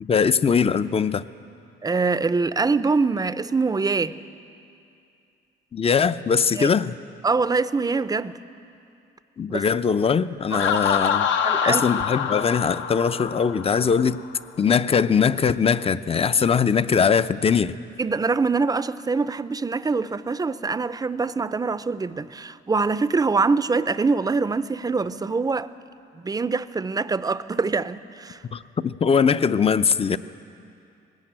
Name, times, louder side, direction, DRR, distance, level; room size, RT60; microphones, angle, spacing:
voice 1, 0.0-1.2 5.7-7.0 9.4-11.3 11.6-14.2 14.6-17.8 28.5-30.2, left 6 dB, 30° left, 0.6 m, -21 dB
voice 2, 1.8-4.2 6.6-6.7 7.2-8.4 9.5-9.6 10.5-10.7 11.4-12.0 16.4-16.5 16.7-16.8 18.0-25.7 26.2-28.4, right 4 dB, 20° right, 0.6 m, -24 dB
Laughter, 10.5-14.2, left 7 dB, 70° left, 0.9 m, -25 dB
19.5 x 17.0 x 8.8 m
cardioid pair, 90°, 20 cm